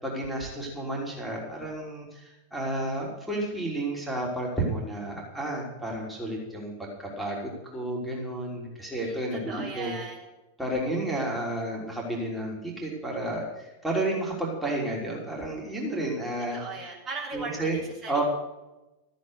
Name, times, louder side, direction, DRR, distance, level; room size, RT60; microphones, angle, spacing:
voice 1, 0.0-9.9 10.6-16.6 17.3-18.2, right 1 dB, 5° right, -4 dB, 3.5 m, -31 dB
voice 2, 8.8-10.3 16.5-18.2, right 3 dB, 30° right, -3 dB, 3.3 m, -38 dB
14.0 x 8.5 x 6.7 m, 1.0 s
figure-of-eight pair, 90°, 0 cm